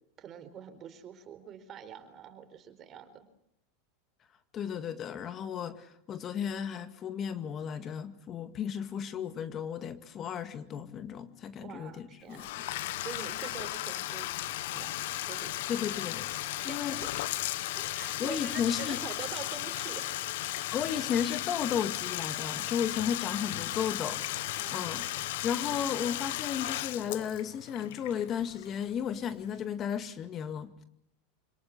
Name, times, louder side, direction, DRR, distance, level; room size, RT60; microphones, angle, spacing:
voice 1, 0.2-3.3 11.5-12.5 13.0-14.3 14.7-15.5 16.5-17.5 17.7-20.1 24.6-24.9, right 8 dB, 35° right, 10 dB, 4.4 m, -45 dB
voice 2, 4.5-12.4 15.7-17.0 18.2-19.0 20.7-24.2 24.7-25.1 25.4-30.8, left 8 dB, 35° left, 10 dB, 2.0 m, -34 dB
Bathtub (filling or washing), 12.3-29.0, left 15 dB, 70° left, 1.3 m, -35 dB
27.0 x 18.5 x 10.0 m, 0.73 s
supercardioid pair, 120°, 0 cm